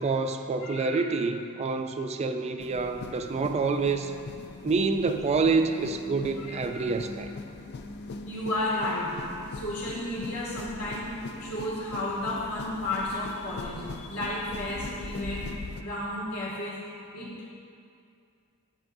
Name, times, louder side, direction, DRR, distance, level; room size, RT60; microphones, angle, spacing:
voice 1, 0.0-4.1 4.6-7.3, right 4 dB, 30° right, 7 dB, 0.3 m, -27 dB
voice 2, 0.6-1.1 6.4-6.9 8.2-16.8 17.1-17.5, left 1 dB, 85° left, -5 dB, 2.1 m, -33 dB
sound 1, 2.6-15.8, left 3 dB, 50° left, 0.4 m, -41 dB
13.5 x 6.8 x 2.6 m, 2.5 s
head